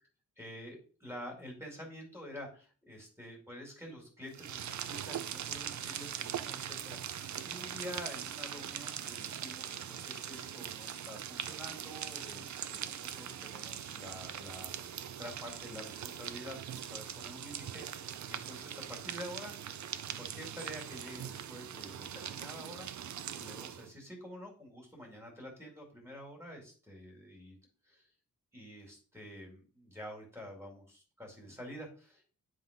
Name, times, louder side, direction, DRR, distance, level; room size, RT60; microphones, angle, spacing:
voice 1, 0.4-19.5 20.2-22.9 23.3-27.6 27.9-28.1 28.5-32.2, equal, 10° right, 1 dB, 2.4 m, -48 dB
sound 1, 4.3-23.9, right 9 dB, 60° right, 0.6 m, -41 dB
9.7 x 3.8 x 5.2 m, 0.38 s
wide cardioid pair, 170°, 32 cm